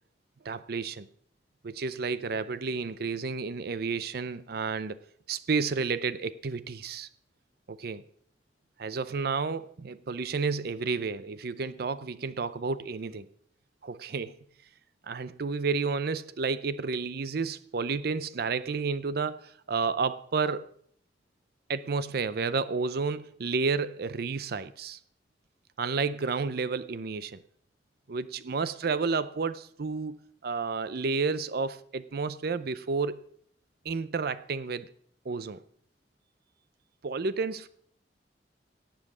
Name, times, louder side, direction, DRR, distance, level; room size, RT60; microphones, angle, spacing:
voice 1, 0.4-1.1 1.6-5.0 5.3-7.1 7.7-8.0 8.8-13.3 13.8-14.4 15.0-20.6 21.7-25.0 25.8-27.4 28.1-33.2 33.8-34.9 35.3-35.6 37.0-37.7, right 4 dB, 60° right, 14 dB, 0.5 m, -31 dB
17.5 x 7.5 x 6.1 m, 0.62 s
head